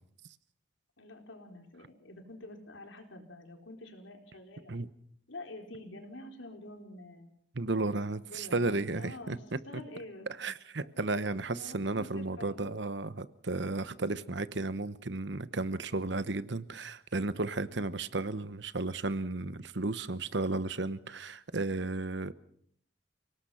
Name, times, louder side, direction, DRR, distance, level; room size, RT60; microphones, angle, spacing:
voice 1, 1.0-4.7 5.3-7.3 8.3-10.3 10.8-10.9 11.5-12.8, left 2 dB, 85° left, 4 dB, 4.4 m, -47 dB
voice 2, 7.5-9.6 10.4-22.3, right 2 dB, 70° right, 14 dB, 1.0 m, -33 dB
30.0 x 18.5 x 5.8 m, 0.65 s
head